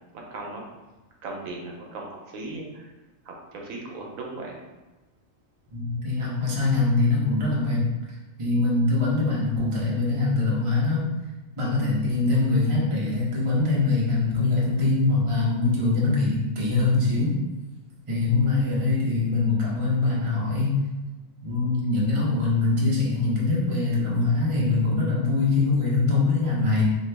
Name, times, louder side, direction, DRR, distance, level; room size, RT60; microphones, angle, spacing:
voice 1, 0.3-0.7 1.2-2.9 3.2-4.5, right 2 dB, 85° right, -1 dB, 1.1 m, -37 dB
voice 2, 5.7-7.9 8.4-11.1 11.6-17.3 18.1-20.8 21.4-26.8, left 3 dB, 30° right, -5 dB, 0.6 m, -23 dB
2.8 x 2.5 x 3.3 m, 1.1 s
omnidirectional pair, 1.4 m